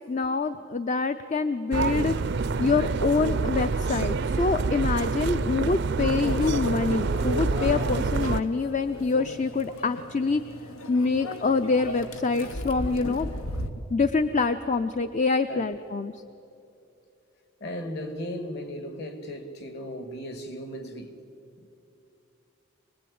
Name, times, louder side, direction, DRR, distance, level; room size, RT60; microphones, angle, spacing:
voice 1, 0.1-2.1 2.6-10.4 10.9-13.3 13.9-16.2, left 4 dB, 35° left, 0.5 m, -25 dB
sound 1, 1.7-8.4, right 4 dB, 55° right, 0.5 m, -27 dB
Microwave oven, 6.2-13.7, left 1 dB, 85° left, 1.4 m, -36 dB
voice 2, 17.6-21.2 21.6-21.7, equal, 50° left, 2.1 m, -36 dB
25.5 x 19.5 x 8.7 m
head